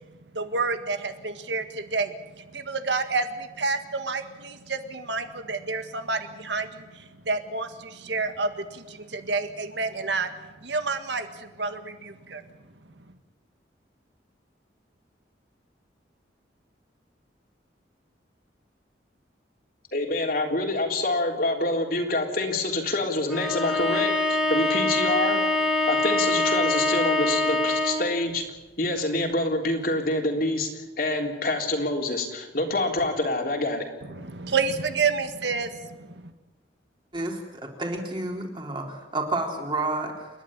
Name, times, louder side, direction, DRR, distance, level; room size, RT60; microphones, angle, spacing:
voice 1, 0.3-10.3 10.6-12.4 34.1-36.3, right 4 dB, 80° right, 8 dB, 1.8 m, -29 dB
voice 2, 19.9-25.5 25.9-28.4 28.8-30.7 31.0-33.9, left 2 dB, 50° left, 2 dB, 3.6 m, -26 dB
Bowed string instrument, 23.3-28.1, left 2 dB, 5° right, 3.2 m, -24 dB
voice 3, 37.1-40.3, right 2 dB, 25° right, 1 dB, 3.7 m, -30 dB
29.0 x 11.5 x 10.0 m, 1.2 s
head